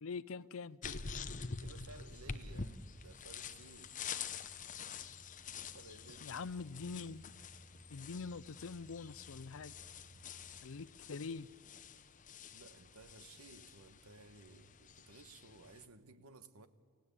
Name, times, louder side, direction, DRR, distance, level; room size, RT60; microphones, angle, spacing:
voice 1, 0.0-1.0 6.2-7.2 7.9-9.7 10.6-11.5, left 4 dB, 65° left, 0.5 m, -44 dB
sound 1, 0.8-15.9, left 5 dB, 35° left, 0.9 m, -48 dB
voice 2, 1.6-4.1 5.7-6.5 12.5-16.7, right 3 dB, 85° right, 1.4 m, -57 dB
sound 2, 3.0-10.6, right 1 dB, 65° right, 2.9 m, -61 dB
29.5 x 16.5 x 8.6 m
head